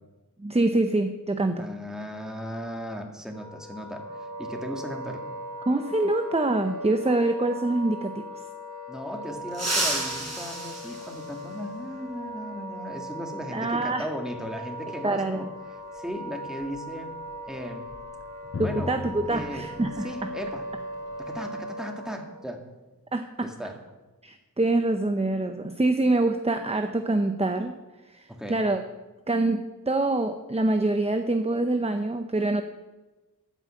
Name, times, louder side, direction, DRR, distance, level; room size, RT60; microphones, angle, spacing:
voice 1, 0.4-1.7 5.7-8.3 13.5-14.1 15.0-15.5 18.6-20.1 23.1-23.5 24.2-27.7 28.1-28.8 29.3-32.6, right 2 dB, 20° right, 7 dB, 0.7 m, -25 dB
voice 2, 1.6-5.3 8.9-15.5 15.9-17.2 17.4-17.9 18.6-19.0 19.3-19.7 20.0-20.7 21.2-22.6 23.4-23.8 28.3-28.6, equal, ahead, 2 dB, 1.9 m, -36 dB
Wind instrument woodwind instrument, 3.3-22.4, equal, 60° right, 2.4 m, -39 dB
sound 1, 9.5-11.9 13.5-13.6 14.9-15.0 16.6-16.8 17.1-17.3 17.8-20.0 20.3-20.5 20.9-21.4, right 1 dB, 45° right, 4.9 m, -33 dB
Drum, 18.5-22.1, left 4 dB, 40° left, 0.8 m, -39 dB
13.5 x 5.6 x 8.6 m, 1.2 s
wide cardioid pair, 55°, 35 cm